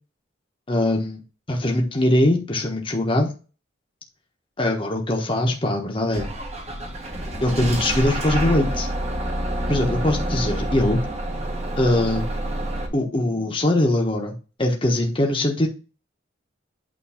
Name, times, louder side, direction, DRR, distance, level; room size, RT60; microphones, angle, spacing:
voice 1, 0.7-1.2 1.5-3.3 4.6-6.3 7.4-8.9 9.7-11.0 11.8-12.2 12.9-14.3 14.6-15.7, left 1 dB, 25° left, 1 dB, 1.2 m, -21 dB
Bus / Engine starting, 6.1-12.9, right 1 dB, 35° right, 1.4 m, -27 dB
8.8 x 3.0 x 5.7 m, 0.34 s
head